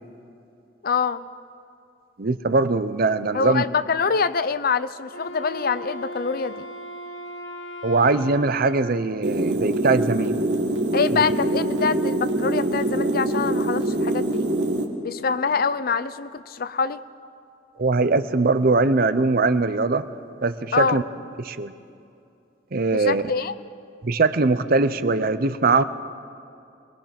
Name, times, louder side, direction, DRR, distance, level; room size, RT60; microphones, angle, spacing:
voice 1, 0.8-1.2 3.3-6.6 10.9-14.5 15.0-17.0 20.7-21.0 22.9-23.5, left 5 dB, 55° left, 14 dB, 0.6 m, -25 dB
voice 2, 2.2-3.6 7.8-10.3 11.1-11.2 17.8-20.1 20.4-21.0 21.4-21.7 22.7-23.2 24.0-25.8, right 3 dB, 55° right, 12 dB, 0.8 m, -21 dB
Wind instrument woodwind instrument, 5.0-9.2, equal, 90° left, 1.4 m, -38 dB
sound 1, 9.2-14.9, right 1 dB, 75° right, 1.9 m, -24 dB
22.5 x 21.0 x 5.9 m, 2.6 s
head